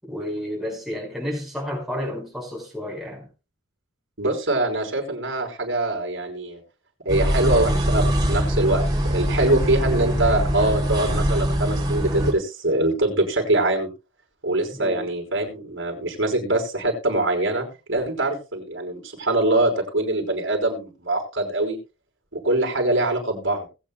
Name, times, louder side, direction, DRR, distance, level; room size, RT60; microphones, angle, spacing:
voice 1, 0.0-3.3 14.7-15.1, equal, ahead, 5.5 m, -31 dB
voice 2, 4.2-6.6 7.0-13.9 14.4-21.8 22.3-23.7, right 2 dB, 70° right, 5.1 m, -23 dB
sound 1, 7.1-12.3, equal, 20° right, 4.5 m, -22 dB
21.0 x 8.8 x 2.4 m
head